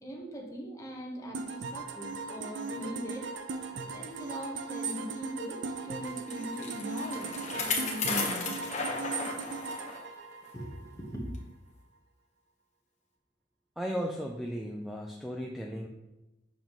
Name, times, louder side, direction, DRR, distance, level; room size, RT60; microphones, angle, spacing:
voice 1, 0.0-3.3 3.9-7.3 7.6-8.6 10.5-11.2, right 1 dB, 15° left, -1 dB, 1.1 m, -40 dB
sound 1, 1.3-11.1, right 4 dB, 60° right, 0.5 m, -38 dB
Bicycle, 6.1-10.0 10.4-10.5 11.3-11.4, left 4 dB, 40° left, 1.1 m, -34 dB
voice 2, 13.8-15.9, equal, ahead, 0 dB, 0.4 m, -35 dB
7.3 x 5.3 x 3.1 m, 1.0 s
head